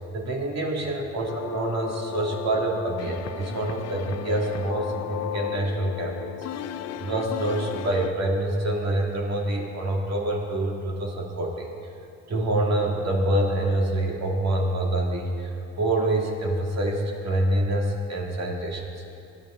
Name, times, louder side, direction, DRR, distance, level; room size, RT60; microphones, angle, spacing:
voice 1, 0.1-6.3 7.0-11.7 12.3-18.8, right 1 dB, 60° right, 0 dB, 2.3 m, -26 dB
sound 1, 1.3-8.1, left 10 dB, 55° left, 0.5 m, -35 dB
19.5 x 11.0 x 3.8 m, 2.9 s
cardioid pair, 90°, 30 cm